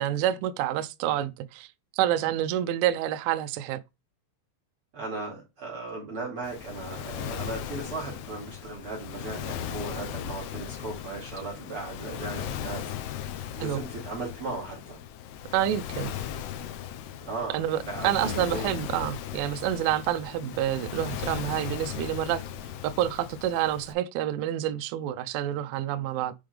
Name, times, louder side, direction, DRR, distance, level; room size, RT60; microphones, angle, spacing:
voice 1, 0.0-1.7 1.9-3.8 13.6-13.8 15.5-16.1 17.5-22.4 22.8-26.3, right 12 dB, 85° right, 2.8 m, -28 dB
voice 2, 4.9-15.0 17.2-18.8, right 3 dB, 40° right, 2.0 m, -37 dB
Waves surf, 6.4-23.9, left 10 dB, 85° left, 3.1 m, -37 dB
8.6 x 3.5 x 3.4 m
omnidirectional pair, 5.9 m